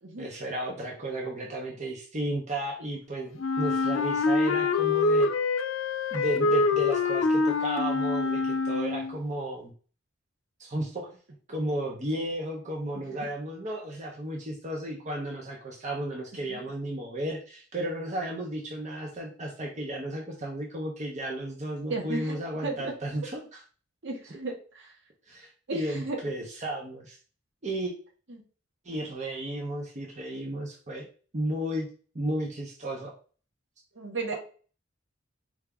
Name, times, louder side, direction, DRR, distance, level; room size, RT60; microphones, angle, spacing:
voice 1, 0.2-5.3 6.1-9.7 10.6-11.1 11.5-23.6 25.3-27.2 27.6-27.9 28.8-31.1 31.3-31.9 32.1-33.1, right 1 dB, 35° right, -1 dB, 0.8 m, -33 dB
Wind instrument woodwind instrument, 3.4-9.2, left 3 dB, 85° left, 0.5 m, -25 dB
voice 2, 12.9-13.3 16.5-16.6 21.9-22.9 24.0-24.9 25.7-26.2 28.3-28.4 33.9-34.3, right 3 dB, 65° right, 1 dB, 1.2 m, -35 dB
4.7 x 2.6 x 3.5 m, 0.39 s
head